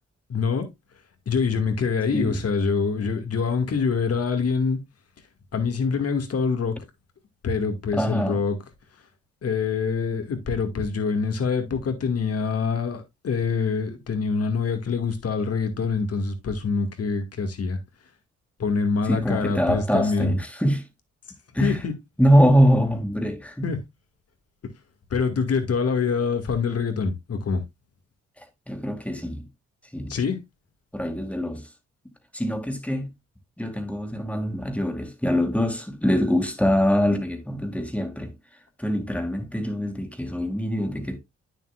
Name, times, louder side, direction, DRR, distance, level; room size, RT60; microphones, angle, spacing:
voice 1, 0.3-0.7 1.3-4.8 5.5-6.8 7.4-8.6 9.4-17.8 18.6-20.4 21.6-21.9 23.6-23.8 25.1-27.6 30.1-30.4, left 5 dB, 55° left, 2.1 m, -25 dB
voice 2, 7.9-8.4 19.1-20.8 21.5-21.8 22.2-23.7 28.7-29.4 29.9-30.1 30.9-31.6 32.3-33.1 33.6-38.3 38.8-41.2, equal, 5° left, 2.3 m, -23 dB
9.2 x 7.2 x 2.4 m
cardioid pair, 65°, 29 cm